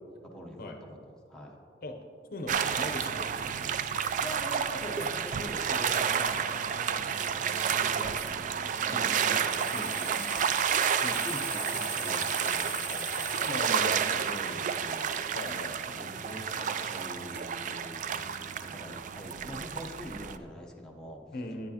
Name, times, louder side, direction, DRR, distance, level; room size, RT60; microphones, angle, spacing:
voice 1, 0.2-1.6 4.2-10.8 11.2-15.1 15.9-21.2, equal, 5° left, -2 dB, 0.9 m, -44 dB
voice 2, 2.3-3.6 8.9-9.1 9.7-9.9 11.0-11.2 13.4-14.3 15.3-15.8 21.3-21.7, left 1 dB, 55° left, 4 dB, 0.6 m, -39 dB
sound 1, 2.5-20.4, right 7 dB, 45° right, 0.3 m, -31 dB
sound 2, 3.0-3.2 4.0-4.2 5.0-5.1 5.9-6.1 7.2-7.3 8.2-8.3 9.1-9.3 11.0-11.3 12.5-12.8 13.6-13.9 14.6-14.8 16.4-16.5 17.3-17.5, right 6 dB, 70° right, 0.7 m, -48 dB
sound 3, 9.5-14.5, right 1 dB, 15° right, 1.3 m, -40 dB
9.4 x 9.1 x 2.9 m, 2.3 s
head